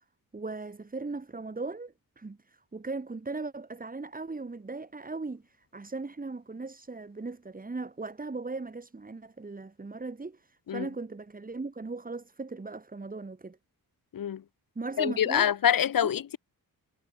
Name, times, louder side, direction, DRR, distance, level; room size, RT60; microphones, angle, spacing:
voice 1, 0.3-13.6 14.8-15.5 16.0-16.2, right 3 dB, 25° right, 7.8 m, -38 dB
voice 2, 15.0-16.4, left 9 dB, 65° left, 1.5 m, -26 dB
wide cardioid pair, 165°, 36 cm